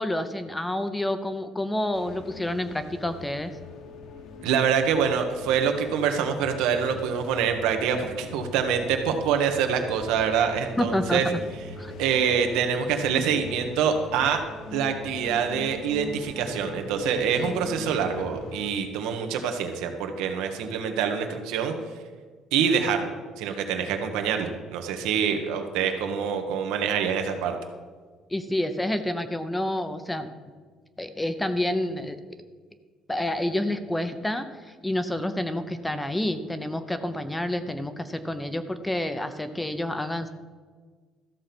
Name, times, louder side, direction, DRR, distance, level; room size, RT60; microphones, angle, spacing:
voice 1, 0.0-3.5 10.8-11.4 11.8-11.9 28.3-30.3 31.0-32.2 33.1-40.3, left 1 dB, 5° left, 10 dB, 0.6 m, -28 dB
sound 1, 1.9-18.7, left 3 dB, 55° left, 1.2 m, -41 dB
voice 2, 4.4-11.2 12.0-14.4 14.7-21.7 22.5-23.1 23.4-27.6, right 7 dB, 90° right, 5 dB, 1.5 m, -25 dB
14.0 x 7.0 x 6.0 m, 1.5 s
cardioid pair, 170°, 0 cm